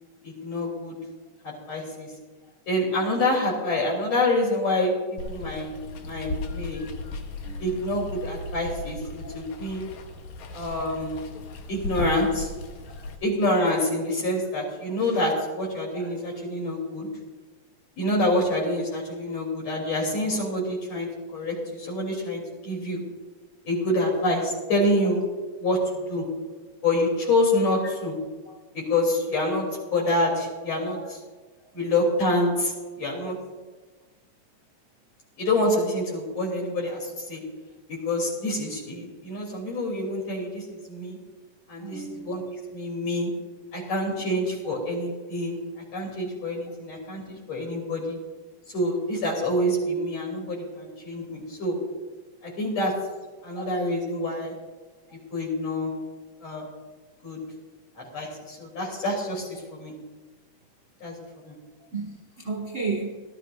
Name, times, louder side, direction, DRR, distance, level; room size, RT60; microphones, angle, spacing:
voice 1, 0.2-1.0 1.4-2.1 2.7-5.7 6.0-6.9 7.6-9.9 10.5-11.2 11.7-12.5 13.2-17.1 18.0-23.0 23.6-25.2 25.6-25.8 26.1-26.2 26.8-28.1 28.7-29.6 29.9-31.2 31.7-33.4 35.4-37.4 37.9-41.2 41.7-43.3 43.7-45.6 45.9-48.2 48.7-51.8 52.4-52.9 53.4-54.5 55.3-55.9 56.4-56.7 57.2-57.4 58.0-59.9 61.0-61.6, left 1 dB, 55° left, -2 dB, 4.3 m, -27 dB
Water, 5.2-13.1, left 2 dB, 75° left, 2.3 m, -36 dB
voice 2, 12.9-13.2 15.9-16.1 26.4-26.6 30.9-31.1 31.7-31.8 41.8-42.3 53.5-53.7 55.1-55.2 58.9-59.0 61.8-63.2, right 4 dB, 35° right, -2 dB, 1.3 m, -35 dB
18.5 x 13.0 x 2.5 m, 1.3 s
omnidirectional pair, 3.4 m